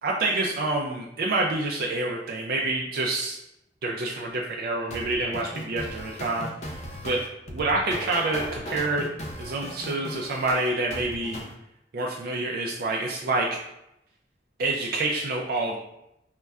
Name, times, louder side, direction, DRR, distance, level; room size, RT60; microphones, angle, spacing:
voice 1, 0.0-3.4 3.8-6.8 7.0-7.2 7.5-9.0 9.4-11.4 11.9-13.6 14.6-15.8, right 2 dB, 60° right, -1 dB, 0.4 m, -27 dB
sound 1, 4.9-11.5, equal, 40° left, 0.5 m, -37 dB
5.3 x 2.1 x 2.3 m, 0.85 s
head